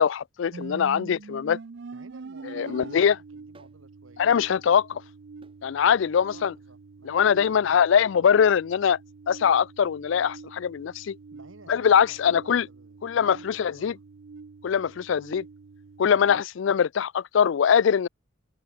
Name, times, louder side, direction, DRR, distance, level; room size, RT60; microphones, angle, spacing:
voice 1, 0.0-1.6 2.5-3.1 4.2-5.0 5.6-6.5 7.0-9.0 9.3-11.2 11.7-12.7 13.0-13.9 14.6-15.4 16.0-18.1, left 7 dB, 65° left, 0.4 m, -22 dB
sound 1, 0.5-16.4, right 4 dB, 60° right, 0.5 m, -45 dB
voice 2, 1.9-4.2 6.2-7.8 11.3-14.0, right 2 dB, 85° right, 7.0 m, -53 dB
sound 2, 3.5-3.8 5.4-5.6 7.4-7.7, right 2 dB, 25° right, 1.6 m, -55 dB
head